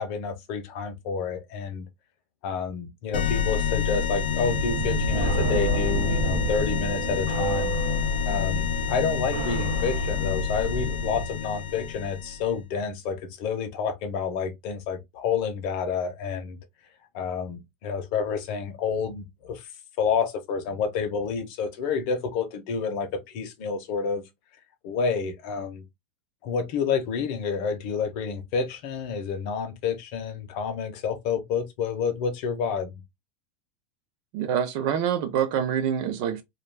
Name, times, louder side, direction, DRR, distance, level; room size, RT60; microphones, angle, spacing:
voice 1, 0.0-1.9 2.4-7.7 8.3-16.6 17.1-19.7 20.0-24.2 24.8-25.8 26.4-33.0, left 6 dB, 40° left, 0.6 m, -29 dB
sound 1, 3.1-12.5, left 6 dB, 75° left, 0.5 m, -28 dB
sound 2, 4.4-11.2, right 3 dB, 85° right, 0.6 m, -30 dB
voice 2, 34.3-36.4, right 9 dB, 40° right, 0.5 m, -26 dB
2.3 x 2.3 x 3.2 m
supercardioid pair, 180°, 6 cm